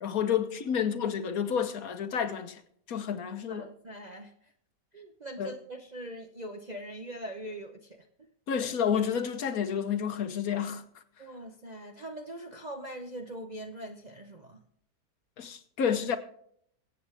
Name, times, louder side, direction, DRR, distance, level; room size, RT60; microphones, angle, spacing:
voice 1, 0.0-2.6 2.9-3.7 5.4-5.5 8.5-10.8 15.4-16.2, left 8 dB, 60° left, 1.3 m, -30 dB
voice 2, 3.5-4.3 4.9-8.0 11.2-14.6, right 1 dB, 35° right, 0.7 m, -42 dB
24.0 x 8.2 x 3.4 m
omnidirectional pair, 1.8 m